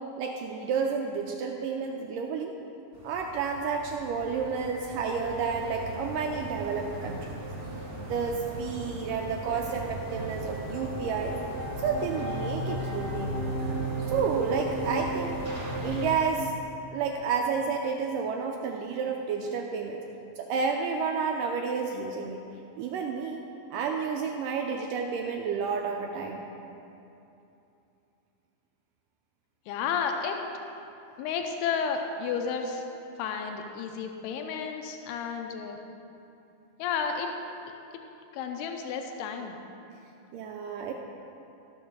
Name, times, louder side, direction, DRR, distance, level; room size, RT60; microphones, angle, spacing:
voice 1, 0.2-2.6 3.0-7.5 8.0-11.4 11.8-13.3 14.1-15.4 15.8-16.6 16.9-20.0 20.4-22.4 22.8-23.4 23.7-26.5 40.3-40.9, right 5 dB, 80° right, 2 dB, 2.0 m, -30 dB
sound 1, 2.9-16.1, right 1 dB, 30° right, 1.2 m, -35 dB
voice 2, 29.7-30.4 31.2-32.8 33.2-35.8 36.8-37.4 38.3-39.6, left 6 dB, 90° left, 4 dB, 2.8 m, -32 dB
13.0 x 7.1 x 6.3 m, 2.8 s
omnidirectional pair, 4.5 m